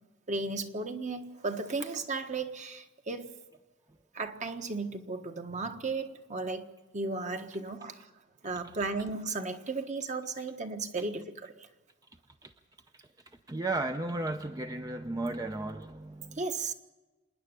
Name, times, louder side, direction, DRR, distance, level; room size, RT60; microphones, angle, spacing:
voice 1, 0.3-3.3 4.1-6.7 6.9-8.1 8.4-11.5 16.4-16.7, right 3 dB, 40° right, 1.4 m, -35 dB
voice 2, 13.5-16.4, right 2 dB, 20° right, 0.6 m, -34 dB
26.5 x 10.5 x 9.7 m
head